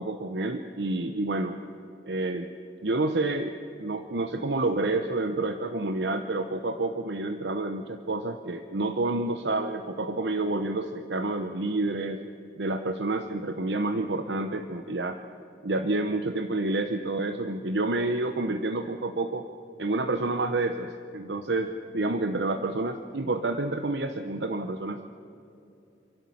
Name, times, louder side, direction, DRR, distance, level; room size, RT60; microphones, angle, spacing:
voice 1, 0.0-1.6 2.0-2.5 2.8-3.5 3.8-12.2 12.6-15.2 15.6-19.5 19.8-25.1, right 2 dB, 75° right, 7 dB, 0.9 m, -29 dB
27.5 x 12.0 x 8.5 m, 2.7 s
head